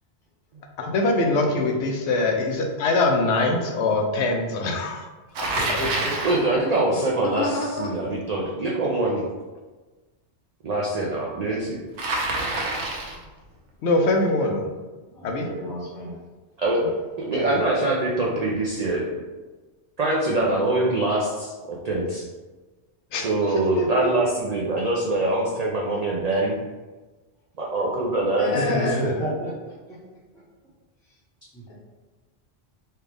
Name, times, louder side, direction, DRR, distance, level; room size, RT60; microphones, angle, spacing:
voice 1, 0.8-5.0 5.7-5.8 13.8-14.7 15.2-15.5 17.3-17.6 23.1-23.3 23.8-24.1 28.6-29.3, left 2 dB, 85° left, 2 dB, 0.9 m, -23 dB
Bicycle, 5.3-6.5 12.0-13.2, right 2 dB, 90° right, 1.0 m, -27 dB
voice 2, 5.6-6.1 15.1-16.2 16.8-16.9 28.9-30.0 30.3-30.4 31.5-31.7, equal, 5° left, -7 dB, 0.7 m, -33 dB
voice 3, 6.2-9.2 10.6-11.8 16.6-16.8 17.2-19.1 20.0-22.2 23.2-26.6 27.6-28.9, right 2 dB, 50° right, -3 dB, 0.5 m, -24 dB
voice 4, 7.2-7.9 28.4-29.0, left 1 dB, 65° left, -3 dB, 1.1 m, -27 dB
4.3 x 2.4 x 3.4 m, 1.2 s
omnidirectional pair, 1.1 m